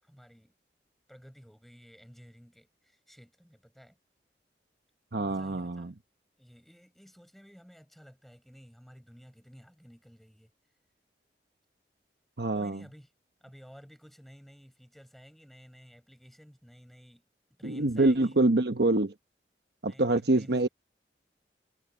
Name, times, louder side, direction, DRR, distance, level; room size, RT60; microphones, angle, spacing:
voice 1, 0.0-0.5 1.1-4.0 5.1-6.0 6.4-10.5 12.5-13.1 13.4-17.2 17.6-18.4 19.8-20.7, equal, ahead, 7.1 m, -53 dB
voice 2, 5.1-5.9 12.4-12.8 17.6-19.1 19.8-20.7, right 2 dB, 70° right, 1.1 m, -25 dB
head